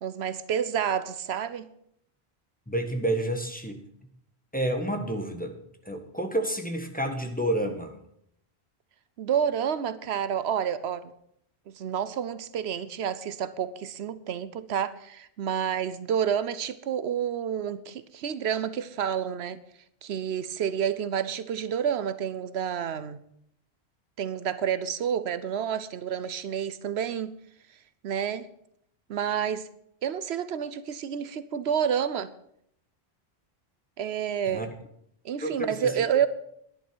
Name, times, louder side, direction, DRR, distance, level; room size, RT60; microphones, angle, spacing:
voice 1, 0.0-1.7 9.2-11.1 11.7-19.6 20.0-23.2 24.2-27.4 28.0-28.5 29.1-29.7 30.0-32.3 34.0-34.7 35.2-36.3, right 8 dB, 80° right, 0.9 m, -29 dB
voice 2, 2.7-3.8 4.5-5.6 5.8-7.9 34.5-34.7 35.4-35.9, right 1 dB, 10° left, 1.4 m, -29 dB
11.0 x 11.0 x 6.1 m
omnidirectional pair, 1.1 m